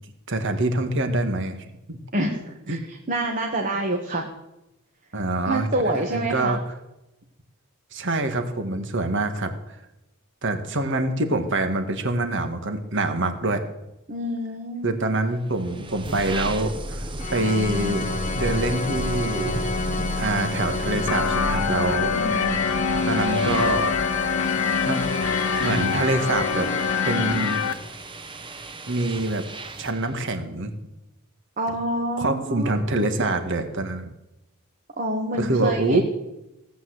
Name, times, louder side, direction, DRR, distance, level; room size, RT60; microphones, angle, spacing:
voice 1, 0.3-1.6 1.9-2.0 2.7-2.8 5.1-6.6 7.9-9.8 10.4-13.6 14.8-17.0 17.3-18.1 18.4-19.6 20.1-22.1 23.1-24.0 24.9-25.1 25.6-26.7 27.0-27.6 28.9-29.4 29.8-30.7 32.2-34.1 35.4-36.0, right 2 dB, 55° right, 7 dB, 1.8 m, -25 dB
voice 2, 2.1-4.3 5.5-6.6 14.1-14.9 22.1-22.6 31.6-32.8 35.0-36.0, right 1 dB, 40° right, 1 dB, 1.7 m, -27 dB
sound 1, 15.4-30.1, right 1 dB, 20° right, 1.1 m, -33 dB
Organ, 17.2-28.0, left 4 dB, 35° left, 0.6 m, -30 dB
sound 2, 21.1-27.7, left 6 dB, 70° left, 0.8 m, -25 dB
17.0 x 8.5 x 8.1 m, 0.93 s
head